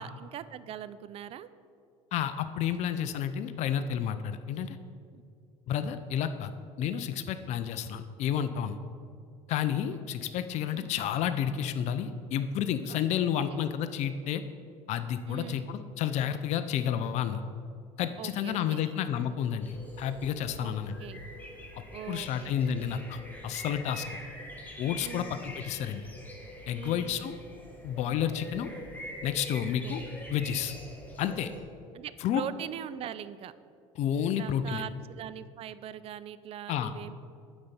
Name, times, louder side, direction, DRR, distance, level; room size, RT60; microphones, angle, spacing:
voice 1, 0.0-1.5 5.1-5.2 10.7-10.9 12.9-13.0 13.5-13.6 15.3-15.6 18.2-19.0 20.6-20.7 21.0-21.2 21.9-23.0 25.0-25.4 26.8-27.2 29.8-30.0 31.9-33.5 34.3-37.1, right 10 dB, 45° right, 15 dB, 0.4 m, -42 dB
voice 2, 2.1-4.8 5.7-6.5 6.8-8.8 9.5-14.4 14.9-17.4 18.0-20.9 21.7-24.0 24.8-26.1 26.7-27.3 27.8-28.7 29.2-30.0 30.3-30.7 31.2-31.5 32.2-32.5 34.0-34.8 36.7-36.9, left 9 dB, 55° left, 10 dB, 0.4 m, -31 dB
sound 1, 19.6-31.6, left 1 dB, 10° left, 1.4 m, -45 dB
8.5 x 4.1 x 5.6 m, 2.4 s
supercardioid pair, 85°, 14 cm